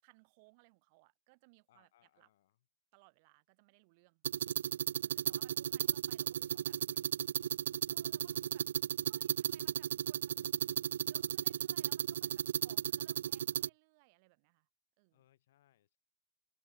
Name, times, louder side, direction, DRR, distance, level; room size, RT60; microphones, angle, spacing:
voice 1, 0.0-2.3 2.9-4.2 5.0-6.8 7.9-8.7 9.0-10.6 11.0-14.7 15.0-15.2, right 29 dB, 45° right, 6.5 m, -66 dB
voice 2, 1.7-2.6 5.2-5.9 6.3-7.0 13.4-13.7 15.1-16.0, left 13 dB, 60° left, 6.4 m, -72 dB
sound 1, 4.2-13.7, right 9 dB, 65° right, 0.5 m, -35 dB
figure-of-eight pair, 90°, 0 cm